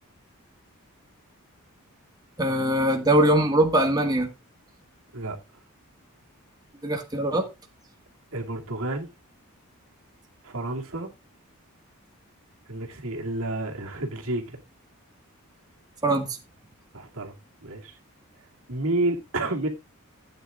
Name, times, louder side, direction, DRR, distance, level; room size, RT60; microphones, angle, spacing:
voice 1, 2.4-4.3 6.8-7.5 16.0-16.4, right 1 dB, 15° right, 1.6 m, -22 dB
voice 2, 8.3-9.1 10.4-11.1 12.7-14.6 16.9-17.4 17.6-18.0 18.7-19.7, right 2 dB, 65° right, 2.5 m, -30 dB
15.5 x 9.1 x 2.4 m
head